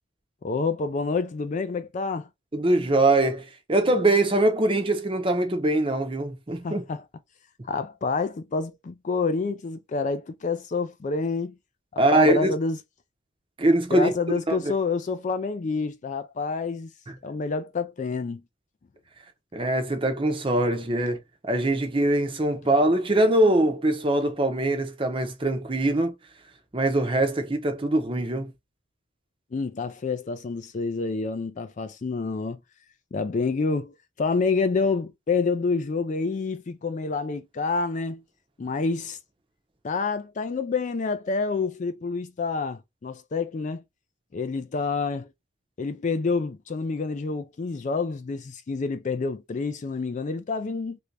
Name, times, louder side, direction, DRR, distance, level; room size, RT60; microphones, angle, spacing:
voice 1, 0.4-2.3 6.6-7.0 7.7-11.6 11.9-12.8 13.9-16.9 17.2-18.4 29.5-32.6 33.1-38.2 38.6-39.2 39.8-43.8 44.3-45.3 45.8-51.0, left 4 dB, 35° left, 0.3 m, -28 dB
voice 2, 2.5-6.8 12.0-12.5 13.6-14.1 14.5-14.6 17.1-17.2 19.5-26.1 26.7-28.5, right 1 dB, 25° right, 0.7 m, -23 dB
3.3 x 2.6 x 3.2 m
head